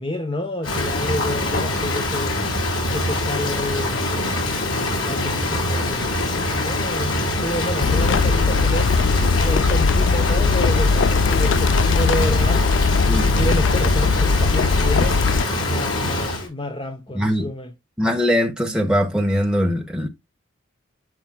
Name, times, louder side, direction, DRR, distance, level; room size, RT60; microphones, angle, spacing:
voice 1, 0.0-2.4 2.9-8.9 9.4-12.7 13.1-15.2 15.7-17.7, left 1 dB, 25° left, 0.8 m, -29 dB
Rain, 0.6-16.5, left 1 dB, 80° left, 4.0 m, -24 dB
sound 1, 7.8-15.4, left 4 dB, 60° left, 0.4 m, -19 dB
voice 2, 17.1-17.5 18.0-20.1, equal, 5° right, 1.5 m, -21 dB
12.0 x 4.6 x 2.3 m
head